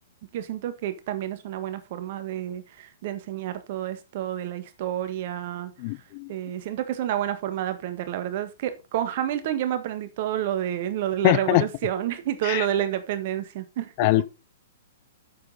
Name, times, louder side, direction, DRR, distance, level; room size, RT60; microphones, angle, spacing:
voice 1, 0.3-5.7 6.3-13.9, right 11 dB, 50° right, 1.6 m, -29 dB
voice 2, 5.8-6.3 11.2-11.6 12.5-12.6 14.0-14.3, left 22 dB, 40° left, 0.4 m, -22 dB
8.6 x 7.2 x 4.1 m
figure-of-eight pair, 115°, 0 cm